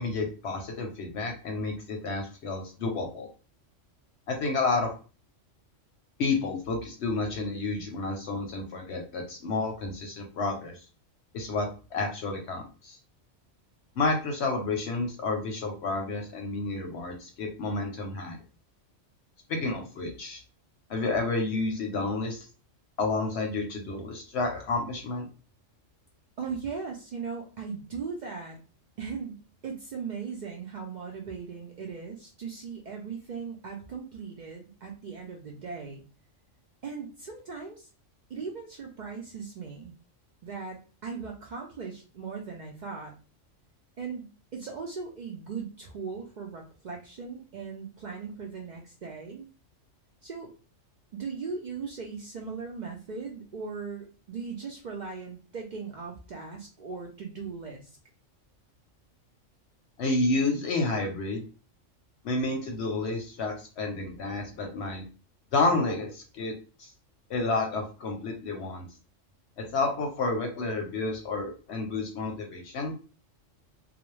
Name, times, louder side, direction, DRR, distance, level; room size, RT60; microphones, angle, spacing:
voice 1, 0.0-3.3 4.3-4.9 6.2-10.7 11.3-13.0 14.0-18.4 19.5-20.4 20.9-22.5 23.0-25.3 60.0-61.4 62.2-65.1 65.5-66.5 66.8-66.9 67.3-68.9 69.6-72.9, left 3 dB, 65° left, 3 dB, 0.8 m, -30 dB
voice 2, 26.4-28.6 29.0-36.0 36.8-37.9 38.3-39.9 40.4-43.1 44.0-49.5 50.2-50.5 51.1-57.9, right 5 dB, 75° right, 0 dB, 0.4 m, -38 dB
2.4 x 2.0 x 3.0 m, 0.35 s
omnidirectional pair, 1.3 m